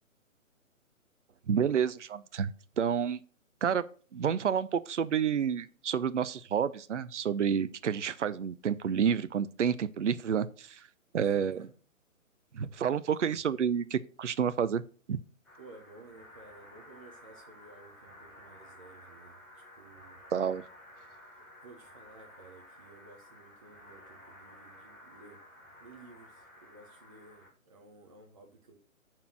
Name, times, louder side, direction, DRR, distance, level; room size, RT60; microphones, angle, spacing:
voice 1, 1.5-2.5 2.8-3.2 3.6-3.8 4.1-10.8 11.1-11.6 12.5-14.8 15.1-15.2 20.3-20.6, right 7 dB, 60° right, 0.6 m, -29 dB
voice 2, 11.1-11.7 13.0-13.1 15.6-20.2 21.6-25.4 25.8-28.8, right 3 dB, 25° right, 0.8 m, -54 dB
sound 1, 15.4-27.5, left 1 dB, 5° left, 1.0 m, -54 dB
8.6 x 4.5 x 6.1 m
figure-of-eight pair, 140°, 41 cm